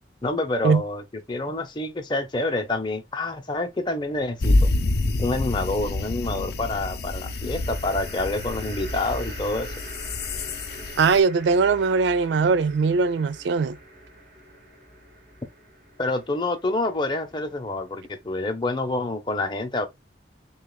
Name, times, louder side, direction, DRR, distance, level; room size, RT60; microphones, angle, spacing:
voice 1, 0.2-4.7 5.2-9.7 16.0-19.9, left 2 dB, 25° left, 0.7 m, -27 dB
sound 1, 4.0-4.7 7.1-18.5, right 1 dB, 45° right, 1.6 m, -44 dB
sound 2, 4.4-11.2, left 2 dB, 60° left, 0.5 m, -27 dB
voice 2, 11.0-13.8, right 4 dB, 75° right, 0.4 m, -20 dB
6.3 x 2.4 x 2.3 m
head